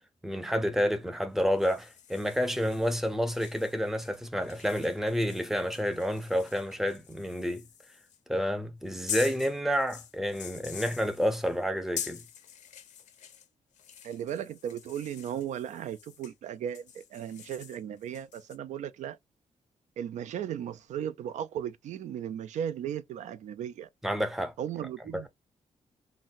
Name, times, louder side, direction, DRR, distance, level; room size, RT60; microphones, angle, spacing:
voice 1, 0.2-7.6 8.3-12.2 24.0-24.5 25.1-25.3, equal, 5° right, 0.5 m, -29 dB
sound 1, 1.4-8.2 8.8-13.5 13.7-16.3 16.7-18.6, left 9 dB, 90° left, 0.6 m, -45 dB
voice 2, 14.0-19.2 20.0-23.9 24.6-25.3, right 9 dB, 80° right, 0.4 m, -36 dB
3.9 x 2.1 x 2.5 m
wide cardioid pair, 150°, 12 cm